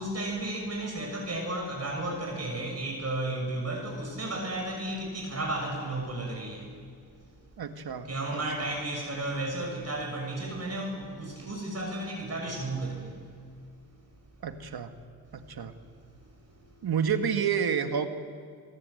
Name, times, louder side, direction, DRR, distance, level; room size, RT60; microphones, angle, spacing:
voice 1, 0.0-6.8 8.1-13.2 16.2-16.7, right 2 dB, 40° right, 1 dB, 6.2 m, -33 dB
voice 2, 7.6-8.4 14.4-14.9 15.3-15.7 16.8-18.1, right 7 dB, 70° right, 7 dB, 1.9 m, -29 dB
29.0 x 19.5 x 8.0 m, 2.1 s
cardioid pair, 65°, 38 cm